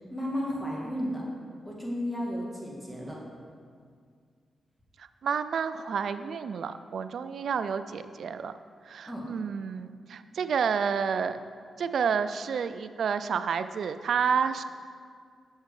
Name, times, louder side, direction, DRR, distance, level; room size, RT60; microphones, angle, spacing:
voice 1, 0.1-1.2 1.6-3.2 9.1-9.3, equal, 5° left, -4 dB, 1.9 m, -33 dB
voice 2, 5.0-8.5 8.9-11.4 11.8-14.6, right 6 dB, 75° right, 11 dB, 0.3 m, -30 dB
7.2 x 6.5 x 4.8 m, 2.1 s
cardioid pair, 95°, 0 cm